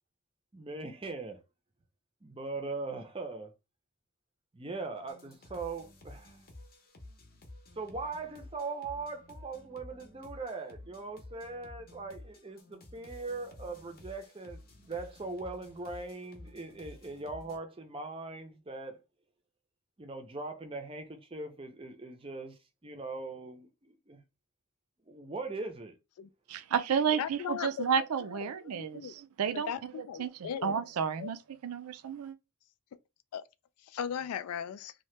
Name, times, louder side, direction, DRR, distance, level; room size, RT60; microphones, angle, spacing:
voice 1, 0.5-1.4 2.2-3.5 4.5-6.4 7.8-19.0 20.0-24.2 25.1-25.9, right 3 dB, 25° right, 0.5 m, -40 dB
sound 1, 4.9-17.6, left 1 dB, 40° left, 0.7 m, -52 dB
voice 2, 26.5-32.4, right 7 dB, 80° right, 0.4 m, -32 dB
voice 3, 27.1-27.9 28.3-28.4 28.6-29.1 29.5-30.8 31.2-31.3 33.3-33.4 33.8-34.9, left 8 dB, 85° left, 0.3 m, -37 dB
2.8 x 2.2 x 3.2 m
head